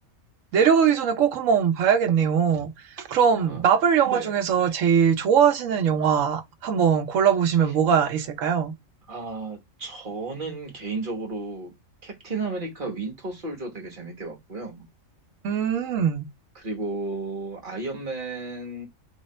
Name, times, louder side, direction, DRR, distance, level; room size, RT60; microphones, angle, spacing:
voice 1, 0.5-2.7 3.0-8.7 15.4-16.3, right 7 dB, 70° right, 1.1 m, -21 dB
voice 2, 9.1-11.7 12.0-14.8 16.5-18.9, right 3 dB, 40° right, 1.4 m, -33 dB
3.6 x 3.2 x 4.2 m
omnidirectional pair, 1.4 m